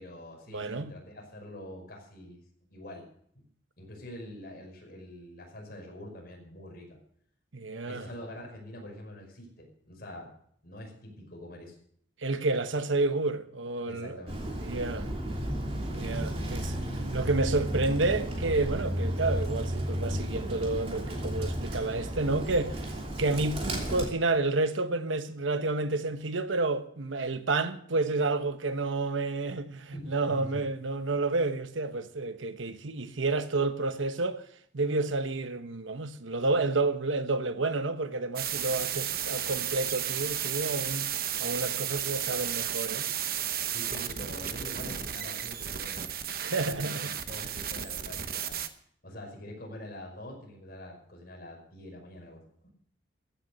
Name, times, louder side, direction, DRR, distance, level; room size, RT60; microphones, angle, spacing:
voice 1, 0.0-2.4 2.7-3.1 3.4-3.5 3.8-7.0 7.9-10.3 10.6-11.8 13.9-14.5 29.9-30.6 43.7-46.1 46.4-48.6 49.0-52.4, left 1 dB, 50° left, 5.5 m, -45 dB
voice 2, 0.5-0.9 7.5-8.1 12.2-14.2 14.6-15.1 15.9-16.8 17.1-22.9 23.2-34.4 34.7-41.1 41.4-43.1 46.4-47.0, right 3 dB, 85° right, 1.1 m, -30 dB
Bird, 14.3-24.1, equal, 30° right, 3.0 m, -33 dB
sound 1, 38.4-48.7, right 9 dB, 50° right, 0.9 m, -33 dB
15.0 x 9.4 x 6.7 m
head